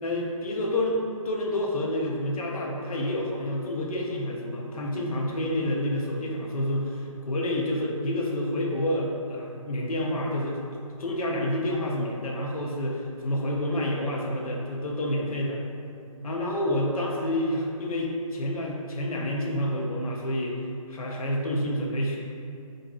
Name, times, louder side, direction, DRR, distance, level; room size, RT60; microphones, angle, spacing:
voice 1, 0.0-10.6 11.0-15.6 16.2-20.6 20.9-22.2, left 1 dB, 85° left, -2 dB, 0.6 m, -28 dB
4.7 x 2.5 x 2.4 m, 2.5 s
hypercardioid pair, 165°, 18 cm